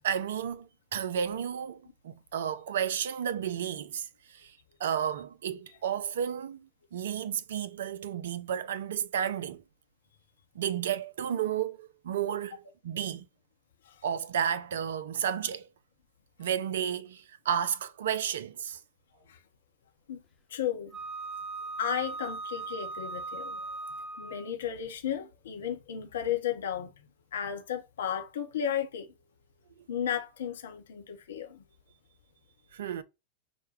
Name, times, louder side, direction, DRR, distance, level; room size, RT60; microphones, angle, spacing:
voice 1, 0.0-9.6 10.6-13.2 14.0-15.7 16.4-18.8 32.7-33.0, right 9 dB, 60° right, 0.4 m, -32 dB
voice 2, 20.5-20.9 21.8-23.6 24.2-26.9 27.3-29.1 29.9-31.6, left 9 dB, 60° left, 0.7 m, -34 dB
Wind instrument woodwind instrument, 20.9-24.5, right 3 dB, 15° left, 0.9 m, -39 dB
5.5 x 2.2 x 3.2 m
figure-of-eight pair, 90°, 0 cm